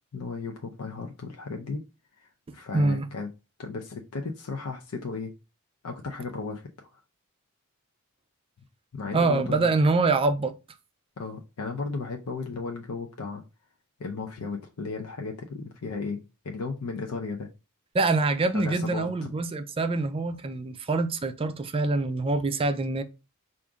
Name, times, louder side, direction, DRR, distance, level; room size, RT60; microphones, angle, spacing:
voice 1, 0.1-1.8 2.2-2.3 2.5-3.3 3.6-5.3 5.8-7.0 8.9-9.7 11.2-13.4 14.0-17.5 18.5-19.3, left 4 dB, 75° left, 0.5 m, -35 dB
voice 2, 2.7-3.0 9.1-10.5 17.9-23.0, right 3 dB, 25° right, 0.4 m, -25 dB
4.9 x 2.5 x 3.5 m
head